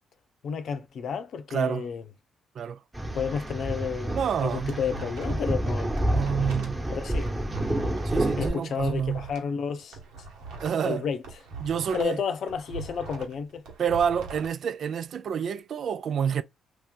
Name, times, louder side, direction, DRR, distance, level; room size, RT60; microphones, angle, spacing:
voice 1, 0.4-2.0 3.1-5.9 6.9-7.3 8.4-10.0 10.9-11.2 11.9-13.6, left 6 dB, 65° left, 0.7 m, -31 dB
voice 2, 1.5-1.9 2.5-2.8 4.1-4.8 6.1-6.9 8.0-9.3 10.6-11.1 11.6-12.2 13.8-16.4, right 7 dB, 60° right, 0.4 m, -28 dB
sound 1, 2.9-8.5, right 1 dB, 15° right, 1.2 m, -29 dB
sound 2, 4.7-5.5 5.8-9.4 9.8-12.2 12.5-14.5, right 4 dB, 90° right, 1.4 m, -41 dB
2.9 x 2.6 x 3.7 m
cardioid pair, 90°, 0 cm